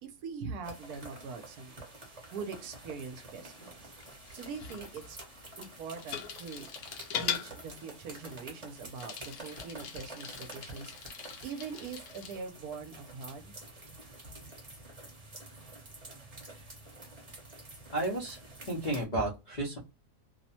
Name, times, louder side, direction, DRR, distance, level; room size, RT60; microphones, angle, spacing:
voice 1, 0.0-1.9 2.3-3.7 4.3-5.2 5.6-6.7 7.1-13.5, right 5 dB, 70° right, 6 dB, 1.0 m, -42 dB
sound 1, 0.6-19.0, right 2 dB, 30° right, 0.8 m, -49 dB
Bicycle, 4.0-12.4, left 8 dB, 75° left, 1.0 m, -42 dB
voice 2, 17.9-18.4 18.7-19.8, right 1 dB, 50° left, -3 dB, 0.5 m, -32 dB
2.8 x 2.0 x 2.7 m, 0.27 s
omnidirectional pair, 1.8 m